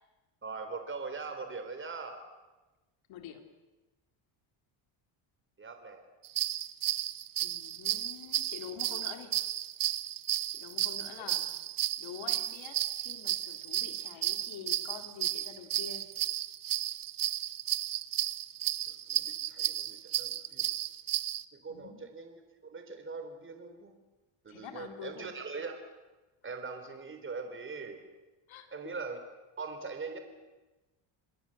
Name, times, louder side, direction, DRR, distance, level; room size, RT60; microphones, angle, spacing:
voice 1, 0.4-2.2 5.6-6.0 11.2-11.3 18.9-20.7 21.5-24.0 24.4-25.8 26.4-28.1 28.7-29.2 29.6-30.2, right 4 dB, 25° right, 7 dB, 3.7 m, -41 dB
voice 2, 3.1-3.4 7.4-9.4 10.5-11.5 12.0-16.1 21.7-22.1 24.5-25.4 28.5-28.7, left 8 dB, 65° left, 6 dB, 3.7 m, -46 dB
sound 1, 6.2-21.4, right 12 dB, 45° right, 0.8 m, -33 dB
28.0 x 21.0 x 7.8 m, 1.1 s
cardioid pair, 135°, 49 cm